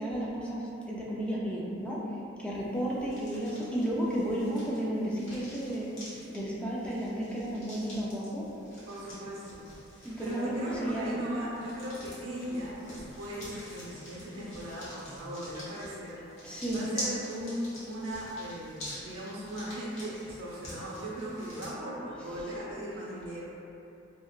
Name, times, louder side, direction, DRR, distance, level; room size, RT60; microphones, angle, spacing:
voice 1, 0.0-2.0 2.4-5.9 6.3-8.5 10.0-11.2 16.4-16.9, right 1 dB, 5° left, -6 dB, 0.3 m, -33 dB
sound 1, 2.5-21.7, equal, 75° left, 1.0 m, -46 dB
voice 2, 8.9-9.7 10.0-23.5, equal, 85° right, -6 dB, 0.7 m, -38 dB
2.9 x 2.1 x 2.3 m, 2.7 s
head